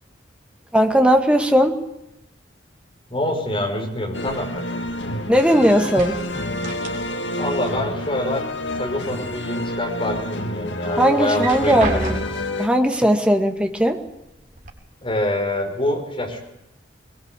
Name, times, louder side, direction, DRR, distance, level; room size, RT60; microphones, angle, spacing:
voice 1, 0.7-1.8 5.3-6.2 11.0-12.2 12.6-14.0, equal, 5° right, 4 dB, 2.2 m, -17 dB
voice 2, 3.1-4.6 7.4-8.4 8.8-12.0 15.0-16.4, left 1 dB, 30° left, 3 dB, 5.9 m, -25 dB
sound 1, 4.1-12.7, left 1 dB, 70° left, 2.2 m, -28 dB
sound 2, 4.2-5.5 5.8-7.4 7.7-8.7 9.1-9.9 10.3-10.4 11.2-12.6 13.6-13.7 14.1-14.7, right 2 dB, 50° right, 4.1 m, -32 dB
22.0 x 21.5 x 8.5 m, 0.86 s
head